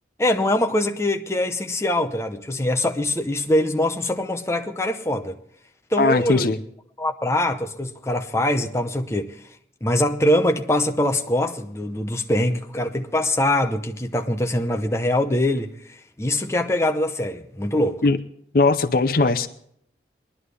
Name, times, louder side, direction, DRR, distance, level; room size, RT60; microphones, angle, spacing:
voice 1, 0.2-5.4 5.9-6.5 7.0-9.4 9.8-18.0, left 1 dB, 15° left, 0.7 m, -23 dB
voice 2, 6.0-6.6 18.0-18.2 18.5-19.5, left 3 dB, 55° left, 0.7 m, -19 dB
21.0 x 11.5 x 3.4 m
head